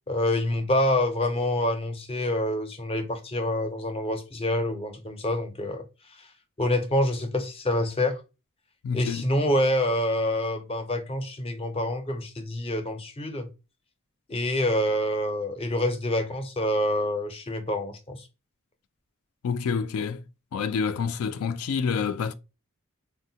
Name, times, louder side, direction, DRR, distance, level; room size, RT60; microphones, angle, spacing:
voice 1, 0.1-5.8 6.6-8.2 8.9-13.5 14.3-18.3, left 1 dB, 25° left, 0.5 m, -26 dB
voice 2, 8.8-9.2 19.4-20.2 20.5-22.3, left 6 dB, 85° left, 0.3 m, -28 dB
3.5 x 2.1 x 2.7 m
head